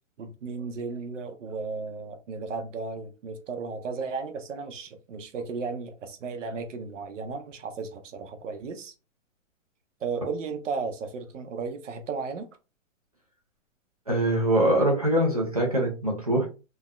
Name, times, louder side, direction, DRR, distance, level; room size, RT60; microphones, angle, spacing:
voice 1, 0.2-8.9 10.0-12.5, right 4 dB, 70° right, 0.7 m, -34 dB
voice 2, 14.1-16.5, right 1 dB, 30° right, 0.4 m, -23 dB
3.2 x 2.1 x 2.2 m
hypercardioid pair, 180°, 39 cm